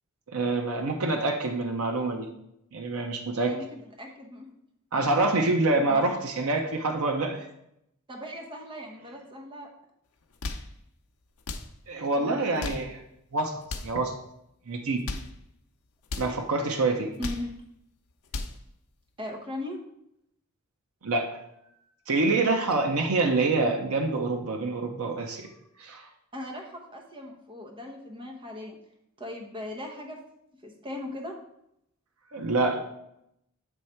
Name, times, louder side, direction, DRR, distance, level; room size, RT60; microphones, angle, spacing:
voice 1, 0.3-2.3 2.7-3.5 4.9-7.4 11.9-12.9 13.3-13.5 13.8-14.1 14.7-15.0 16.2-17.1 21.0-21.3 22.1-25.5 25.8-26.1 32.3-32.8, right 3 dB, 85° right, 3 dB, 0.7 m, -26 dB
voice 2, 3.3-4.5 5.9-6.1 8.1-9.7 12.1-12.8 17.2-17.5 19.2-19.8 26.3-28.8 29.2-30.2 30.6-31.4, left 1 dB, 25° right, 1 dB, 0.9 m, -39 dB
sound 1, 10.2-10.7 11.4-11.7 12.4-12.9 13.6-14.0 14.8-15.3 16.0-16.3 17.0-17.5 18.1-18.6, left 3 dB, 90° left, 0.6 m, -36 dB
7.9 x 3.2 x 4.4 m, 0.79 s
head